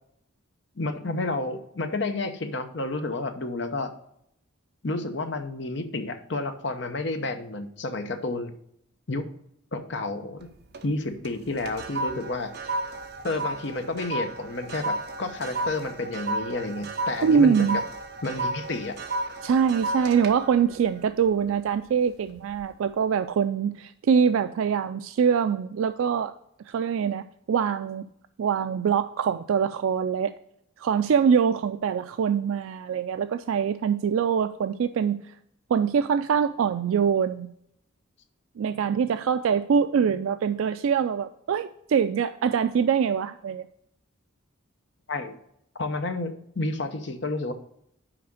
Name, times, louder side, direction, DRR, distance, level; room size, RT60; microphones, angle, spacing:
voice 1, 0.8-3.9 4.8-8.5 9.1-9.3 9.7-10.5 10.8-12.8 13.2-17.8 18.2-19.0 45.1-45.4 45.8-47.5, left 2 dB, 55° left, 8 dB, 0.8 m, -30 dB
sound 1, 10.4-10.9 11.2-21.8 22.3-22.6, right 2 dB, 50° right, 0.8 m, -33 dB
voice 2, 17.2-17.8 19.4-26.3 26.7-28.1 28.4-30.3 30.8-35.2 35.7-37.5 38.6-43.6, right 7 dB, 80° right, 10 dB, 0.3 m, -24 dB
5.9 x 5.0 x 6.2 m, 0.74 s
head